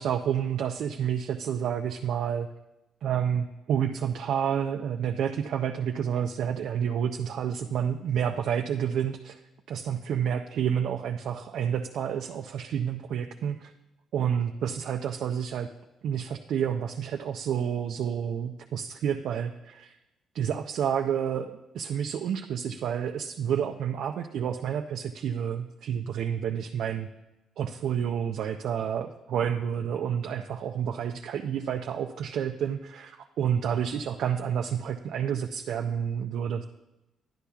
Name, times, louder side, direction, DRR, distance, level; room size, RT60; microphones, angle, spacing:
voice 1, 0.0-2.5 3.0-9.4 9.7-13.7 14.1-15.7 16.0-19.9 20.3-27.1 27.6-36.6, right 8 dB, 75° right, 3 dB, 0.4 m, -29 dB
11.0 x 9.9 x 2.3 m, 0.96 s
cardioid pair, 90°, 0 cm